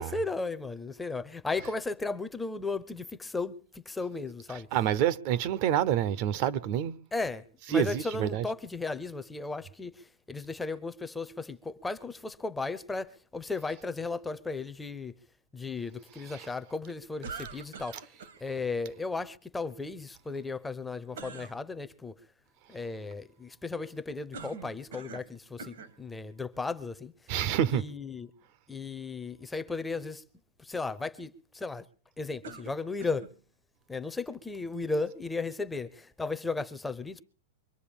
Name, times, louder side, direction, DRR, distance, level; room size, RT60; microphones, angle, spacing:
voice 1, 0.0-4.7 7.1-7.4 7.7-9.9 10.3-15.1 15.5-18.0 18.4-22.1 22.7-27.1 27.7-28.3 28.7-30.2 30.6-31.9 32.2-33.3 33.9-37.2, left 3 dB, 5° left, 0.6 m, -35 dB
voice 2, 4.7-7.0 7.7-8.4 16.3-16.5 27.3-27.8, right 10 dB, 40° right, 0.7 m, -27 dB
sound 1, 17.2-18.4 21.1-21.6 24.3-25.3 25.6-26.0 26.8-26.9 32.4-33.3, right 4 dB, 80° right, 2.4 m, -44 dB
24.0 x 8.0 x 7.0 m
supercardioid pair, 160°, 0 cm